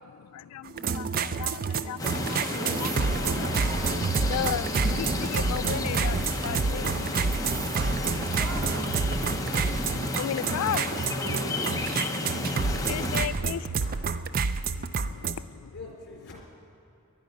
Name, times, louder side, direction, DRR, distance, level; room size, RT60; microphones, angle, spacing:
voice 1, 0.0-2.9 3.4-3.5 4.3-8.0 9.8-10.9 12.9-13.8 14.4-15.7, left 9 dB, 75° left, 0.3 m, -36 dB
sound 1, 0.7-15.4, right 5 dB, 40° right, 0.4 m, -29 dB
sound 2, 2.0-13.3, left 2 dB, 15° left, 0.8 m, -32 dB
voice 2, 2.5-4.0 8.4-9.1 10.9-11.7, right 1 dB, 75° right, 2.7 m, -41 dB
voice 3, 10.7-11.8 12.6-13.5 13.8-14.0 14.4-14.5 14.9-16.4, left 2 dB, 50° left, 4.3 m, -50 dB
20.0 x 11.0 x 5.3 m
head